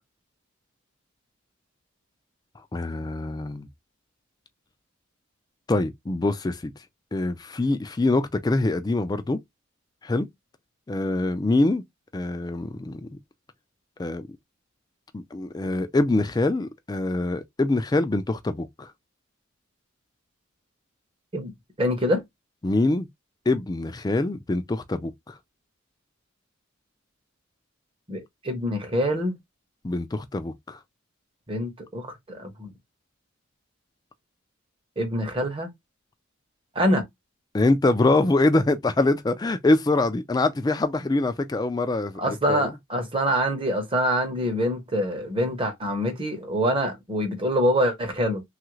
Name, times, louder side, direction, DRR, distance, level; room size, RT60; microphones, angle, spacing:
voice 1, 2.7-3.7 5.7-6.7 7.1-9.4 10.0-10.3 10.9-11.8 12.1-13.1 14.0-14.3 15.1-18.9 22.6-23.1 23.5-25.3 29.8-30.8 37.5-42.7, left 2 dB, 20° left, 0.3 m, -24 dB
voice 2, 21.8-22.2 28.1-29.3 31.5-32.7 35.0-35.7 36.7-37.0 42.2-48.4, equal, 25° right, 0.8 m, -25 dB
3.2 x 2.4 x 3.0 m
head